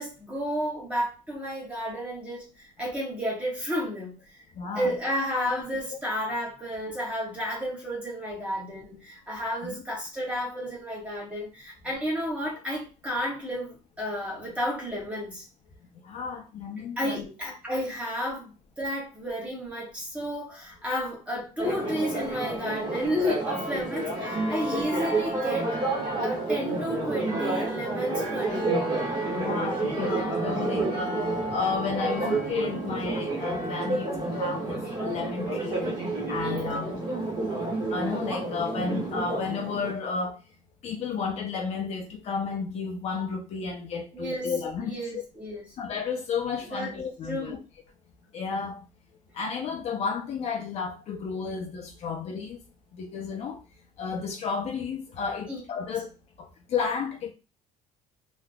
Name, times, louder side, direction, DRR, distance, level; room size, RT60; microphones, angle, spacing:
voice 1, 0.0-4.1 4.7-15.4 17.0-18.5 18.8-25.7 26.2-28.7 36.4-36.7 44.1-44.5 44.8-45.7 46.7-46.9 47.2-47.6 55.5-55.6, equal, 10° right, 1.4 m, -32 dB
voice 2, 4.6-4.9 9.6-9.8 16.0-17.3 29.3-31.2 31.5-35.8 36.3-37.0 37.9-40.4 40.8-45.2 45.8-47.6 48.3-48.8 49.3-52.6 52.9-53.6 54.0-56.1 56.4-57.3, left 5 dB, 50° left, 0.6 m, -32 dB
Church bell, 21.6-39.9, right 2 dB, 30° right, 1.5 m, -29 dB
3.6 x 3.0 x 2.2 m
cardioid pair, 145°, 14 cm